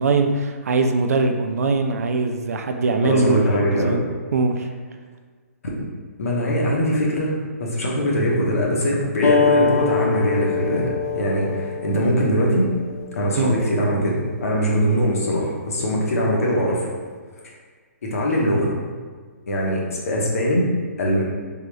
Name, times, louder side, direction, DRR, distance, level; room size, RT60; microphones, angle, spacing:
voice 1, 0.0-4.0 4.3-4.7 13.4-13.6, right 3 dB, 75° right, 6 dB, 0.4 m, -21 dB
voice 2, 3.0-4.0 5.6-5.7 6.2-12.7 13.1-16.9 18.0-18.7 19.5-20.7 21.0-21.2, equal, 65° left, -2 dB, 1.0 m, -22 dB
sound 1, 9.2-14.4, left 5 dB, 90° left, 0.5 m, -24 dB
3.8 x 2.3 x 3.2 m, 1.5 s
hypercardioid pair, 165°, 8 cm